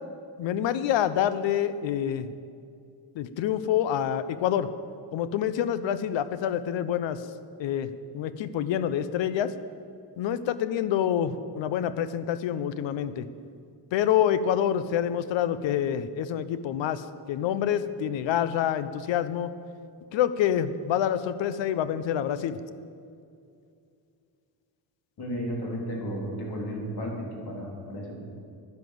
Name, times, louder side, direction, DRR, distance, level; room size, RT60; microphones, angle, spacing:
voice 1, 0.4-2.3 3.1-4.7 5.1-7.2 7.6-9.5 10.2-13.3 13.9-19.5 20.1-22.6, left 10 dB, 70° left, 14 dB, 0.8 m, -27 dB
voice 2, 25.2-28.2, equal, 55° left, -1 dB, 4.0 m, -33 dB
10.5 x 10.5 x 7.8 m, 2.4 s
cardioid pair, 105°, 46 cm